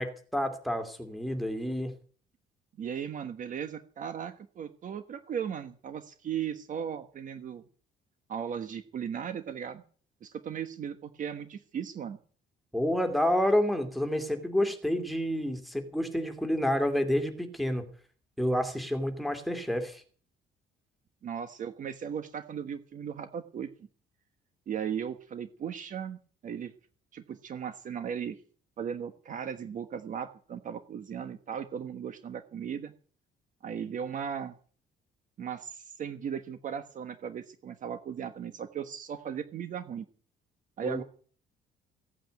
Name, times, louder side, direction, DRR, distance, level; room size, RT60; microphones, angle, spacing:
voice 1, 0.0-1.9 12.7-17.8 18.4-20.0 40.8-41.0, equal, ahead, 7 dB, 2.6 m, -29 dB
voice 2, 2.8-7.6 8.3-9.8 10.2-12.2 21.2-23.7 24.7-26.7 27.1-28.4 28.8-32.9 33.6-34.6 35.4-40.1 40.8-41.0, right 8 dB, 40° right, 9 dB, 1.3 m, -37 dB
16.5 x 9.1 x 9.2 m, 0.43 s
cardioid pair, 165°, 19 cm